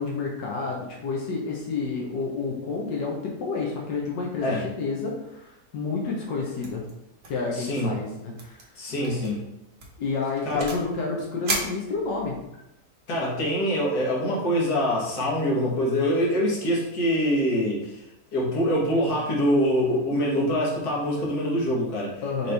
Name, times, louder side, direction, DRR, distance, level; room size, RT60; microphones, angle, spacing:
voice 1, 0.0-6.8 7.3-8.7 10.0-12.4 22.2-22.5, left 4 dB, 90° left, -2 dB, 1.4 m, -30 dB
sound 1, 6.6-6.9 7.2-7.5 7.7-7.8 8.4-8.6 9.0-9.3 9.8-10.9 11.4-12.4, right 2 dB, 45° right, 0.9 m, -33 dB
voice 2, 7.5-8.0 8.8-9.4 10.4-10.7 13.1-18.0 18.3-22.1 22.4-22.5, equal, 65° left, -3 dB, 1.7 m, -24 dB
5.2 x 3.1 x 3.3 m, 0.87 s
omnidirectional pair, 1.8 m